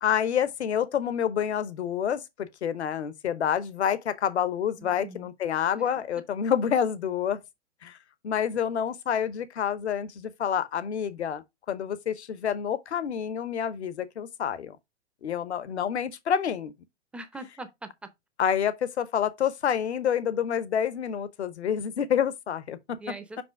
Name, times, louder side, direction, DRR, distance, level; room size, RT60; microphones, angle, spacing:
voice 1, 0.0-7.4 7.8-8.0 8.2-11.4 11.7-14.8 15.2-16.7 18.4-23.0 23.4-23.5, left 8 dB, 70° left, 0.9 m, -28 dB
voice 2, 4.8-5.3 5.7-5.9 17.1-17.9 23.0-23.4, right 2 dB, 5° right, 0.6 m, -41 dB
5.5 x 5.2 x 3.5 m
figure-of-eight pair, 110°, 35 cm